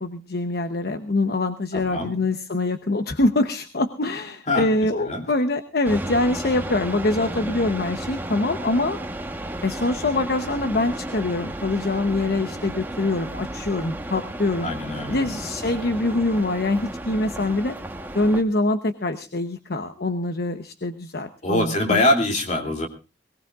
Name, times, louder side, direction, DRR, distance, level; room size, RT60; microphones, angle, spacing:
voice 1, 0.0-9.0 9.6-14.7 15.1-17.8 18.1-22.0, left 2 dB, 60° left, 8 dB, 0.9 m, -24 dB
voice 2, 1.7-2.1 4.5-4.7 5.0-5.2 14.6-15.3 21.4-22.9, left 1 dB, 45° left, 3 dB, 2.8 m, -23 dB
sound 1, 5.8-18.4, right 1 dB, 10° right, 1.1 m, -33 dB
21.5 x 18.5 x 2.4 m, 0.31 s
head